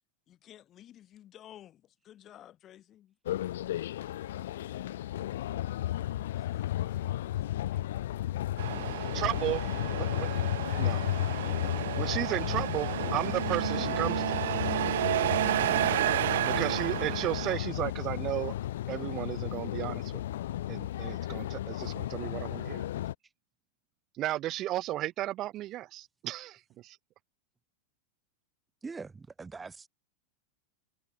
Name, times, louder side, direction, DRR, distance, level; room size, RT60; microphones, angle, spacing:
voice 1, 0.3-3.1, left 12 dB, 35° left, 1.8 m, -53 dB
sound 1, 3.3-23.1, left 13 dB, 80° left, 0.7 m, -34 dB
sound 2, 3.4-14.7, left 33 dB, 50° left, 3.3 m, -58 dB
Truck, 8.6-17.5, right 13 dB, 75° right, 0.4 m, -31 dB
voice 2, 9.0-9.6 9.9-10.3 10.8-11.0 12.0-14.4 16.4-18.5 18.9-20.2 20.7-22.9 24.2-27.0, right 15 dB, 40° right, 0.6 m, -34 dB
voice 3, 28.8-29.9, right 4 dB, 15° right, 2.1 m, -42 dB
hypercardioid pair, 125°, 0 cm